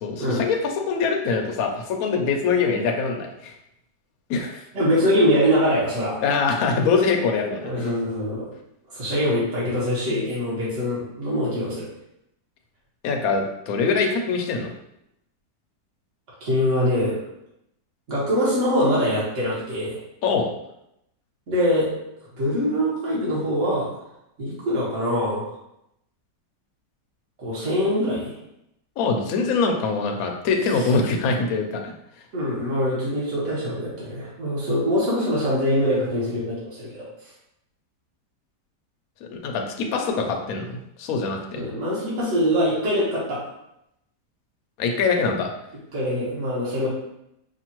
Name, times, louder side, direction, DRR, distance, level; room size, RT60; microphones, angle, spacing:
voice 1, 0.0-3.5 4.3-4.6 6.2-7.9 13.0-14.7 20.2-20.5 29.0-31.8 39.3-41.6 44.8-45.5, left 4 dB, 65° left, 3 dB, 1.0 m, -23 dB
voice 2, 4.7-6.2 7.6-8.5 8.9-11.9 16.4-17.2 18.1-20.0 21.5-21.9 22.4-23.9 24.4-25.5 27.4-28.3 32.3-37.1 41.6-43.4 45.9-46.9, equal, 45° right, -7 dB, 1.8 m, -23 dB
5.8 x 2.5 x 2.9 m, 0.81 s
omnidirectional pair, 1.8 m